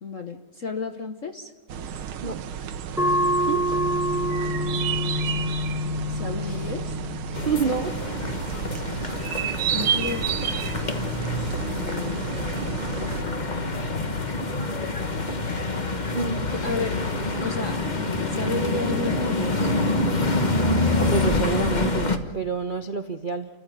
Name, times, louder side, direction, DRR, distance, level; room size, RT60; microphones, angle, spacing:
voice 1, 0.0-1.5 5.4-6.9 9.7-10.3 11.6-13.6 16.4-17.0 17.4-19.7, left 4 dB, 45° left, 7 dB, 1.2 m, -33 dB
sound 1, 1.7-13.2, right 8 dB, 75° right, 1.8 m, -31 dB
sound 2, 3.0-8.1, equal, ahead, 0.9 m, -27 dB
sound 3, 7.3-22.2, left 2 dB, 25° left, 1.2 m, -26 dB
voice 2, 7.4-8.0 16.0-16.4 21.0-23.5, right 5 dB, 60° right, 8 dB, 0.5 m, -28 dB
29.5 x 15.0 x 9.2 m, 1.2 s
omnidirectional pair, 2.3 m